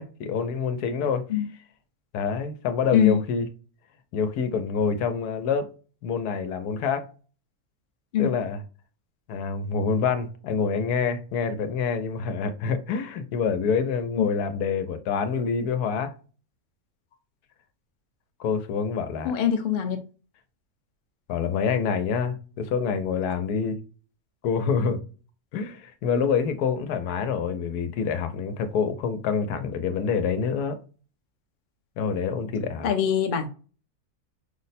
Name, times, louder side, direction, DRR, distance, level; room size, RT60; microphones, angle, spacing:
voice 1, 0.0-1.2 2.1-3.5 4.1-5.7 6.0-7.1 8.2-8.6 9.3-16.1 18.4-19.3 21.3-23.8 24.4-25.0 25.5-30.8 32.0-32.9, left 6 dB, 85° left, 1.2 m, -26 dB
voice 2, 19.2-20.0 32.8-33.5, left 8 dB, 50° left, 0.6 m, -22 dB
5.4 x 2.1 x 4.1 m
omnidirectional pair, 1.6 m